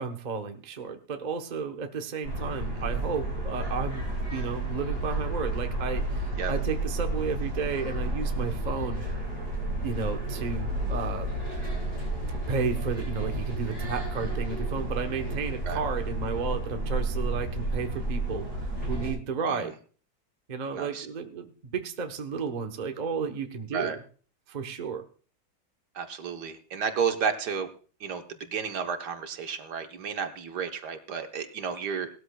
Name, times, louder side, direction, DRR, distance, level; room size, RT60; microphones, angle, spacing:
voice 1, 0.0-4.0 4.3-9.0 9.8-11.3 12.5-19.8 20.5-24.0 24.5-25.1, right 5 dB, 35° right, 5 dB, 0.8 m, -33 dB
sound 1, 2.2-19.1, right 2 dB, 60° left, 7.6 m, -31 dB
voice 2, 20.7-21.1 23.7-24.0 25.9-27.7 28.0-32.1, right 6 dB, 65° right, 6 dB, 1.6 m, -32 dB
19.0 x 13.0 x 2.3 m, 0.40 s
omnidirectional pair, 1.9 m